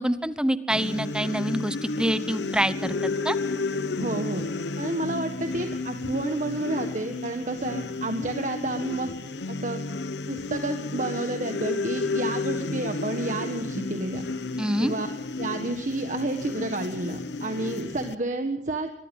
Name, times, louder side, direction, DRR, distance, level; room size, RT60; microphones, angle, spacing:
voice 1, 0.0-2.9 3.2-3.4 14.6-14.9, right 1 dB, 5° right, 13 dB, 0.9 m, -26 dB
sound 1, 0.7-18.1, left 3 dB, 75° left, 0.9 m, -32 dB
voice 2, 4.0-4.5 4.8-9.1 9.5-9.8 10.3-14.3 14.8-15.1 15.4-18.9, right 2 dB, 45° right, 5 dB, 1.6 m, -30 dB
24.0 x 21.5 x 5.5 m, 0.74 s
head